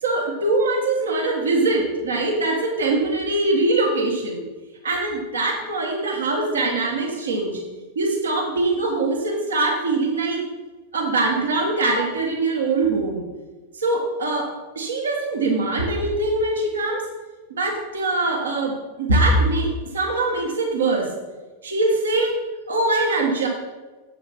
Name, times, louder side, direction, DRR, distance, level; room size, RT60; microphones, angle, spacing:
voice 1, 0.0-4.4 4.8-7.6 7.9-10.4 10.9-13.2 13.7-17.0 17.5-21.1 21.6-22.4 22.7-23.5, right 2 dB, 75° right, 0 dB, 1.4 m, -22 dB
7.1 x 6.8 x 4.3 m, 1.2 s
figure-of-eight pair, 90°, 0 cm